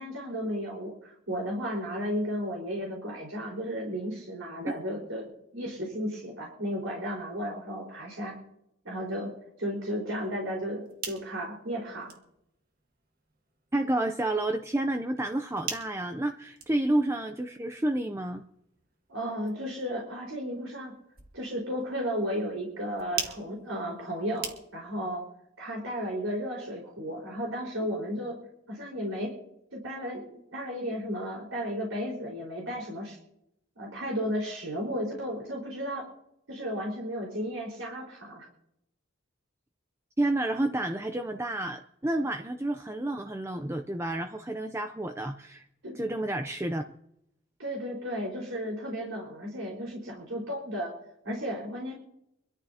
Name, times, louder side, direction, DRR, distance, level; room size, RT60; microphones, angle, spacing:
voice 1, 0.0-8.4 8.8-9.3 9.6-12.1 19.1-20.9 21.3-25.2 25.6-28.4 28.7-29.3 29.7-33.2 33.8-36.1 36.5-38.5 45.8-46.0 47.6-50.9 51.2-51.9, equal, 80° right, -2 dB, 4.5 m, -34 dB
sound 1, 10.6-25.0, right 6 dB, 45° right, 1.8 m, -44 dB
voice 2, 13.7-18.4 40.2-45.7 45.9-46.8, right 1 dB, 15° right, 6 dB, 0.5 m, -30 dB
25.0 x 13.5 x 2.8 m, 0.78 s
head